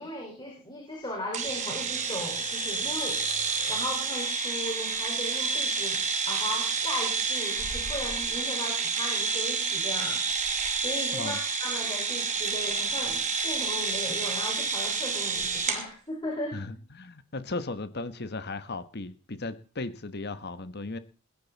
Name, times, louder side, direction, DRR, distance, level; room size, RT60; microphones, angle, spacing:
voice 1, 0.0-3.2 3.7-6.0 6.3-10.2 10.8-16.7, left 1 dB, 20° left, 5.2 m, -37 dB
sound 1, 1.3-15.8, right 4 dB, 35° right, 2.8 m, -29 dB
voice 2, 16.5-21.0, left 3 dB, 50° left, 1.3 m, -36 dB
21.5 x 10.5 x 4.1 m
head